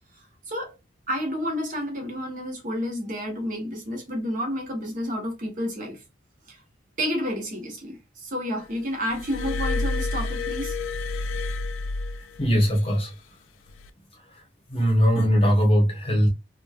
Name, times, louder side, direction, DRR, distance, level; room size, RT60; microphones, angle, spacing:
voice 1, 0.1-0.7 1.1-6.0 6.5-6.6 7.0-10.8, equal, 45° right, 0.8 m, -30 dB
Glass, 9.1-12.7 13.7-13.9, left 3 dB, 90° left, 0.3 m, -29 dB
voice 2, 12.4-13.1 14.7-16.3, equal, 30° left, 0.8 m, -20 dB
3.0 x 2.2 x 2.2 m
head